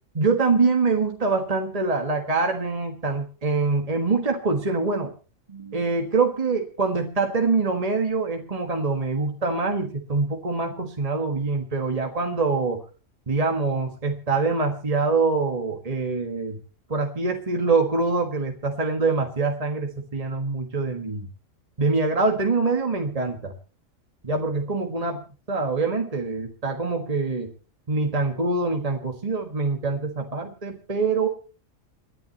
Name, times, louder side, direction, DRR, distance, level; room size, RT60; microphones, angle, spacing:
voice 1, 0.2-5.1 5.5-12.8 13.3-16.6 16.9-21.3 21.8-23.5 24.2-27.5 27.9-31.3, right 3 dB, 30° right, 3 dB, 1.6 m, -24 dB
28.0 x 11.0 x 3.0 m, 0.35 s
omnidirectional pair, 1.4 m